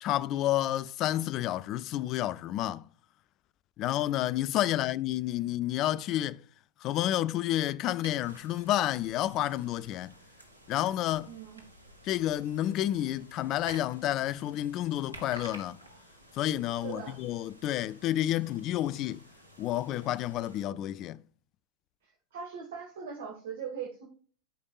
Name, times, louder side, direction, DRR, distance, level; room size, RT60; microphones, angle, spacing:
voice 1, 0.0-2.8 3.8-6.4 6.8-10.1 10.7-11.3 12.0-15.8 16.3-19.2 19.6-21.2, left 13 dB, 35° left, 0.4 m, -30 dB
sound 1, 8.0-20.6, equal, 85° left, 2.0 m, -52 dB
voice 2, 11.3-11.6 16.8-17.2 22.0-24.1, right 6 dB, 55° right, 1.5 m, -40 dB
13.0 x 5.3 x 2.3 m
figure-of-eight pair, 90°, 0 cm